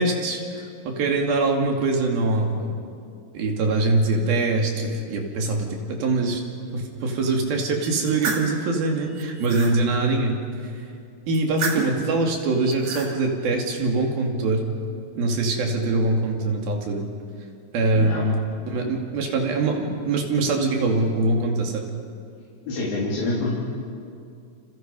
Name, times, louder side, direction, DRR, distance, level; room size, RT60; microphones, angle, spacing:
voice 1, 0.0-2.7 3.3-6.4 6.7-10.4 11.3-14.7 15.2-17.1 17.7-21.9, right 2 dB, 90° right, 2 dB, 4.4 m, -23 dB
sound 1, 7.8-8.5 9.1-9.8 11.3-12.0 12.6-13.1, right 4 dB, 50° right, 3.2 m, -30 dB
voice 2, 17.9-18.3 18.6-18.8 22.7-23.6, left 2 dB, 85° left, -6 dB, 5.1 m, -27 dB
29.0 x 27.5 x 5.5 m, 2.4 s
omnidirectional pair, 4.1 m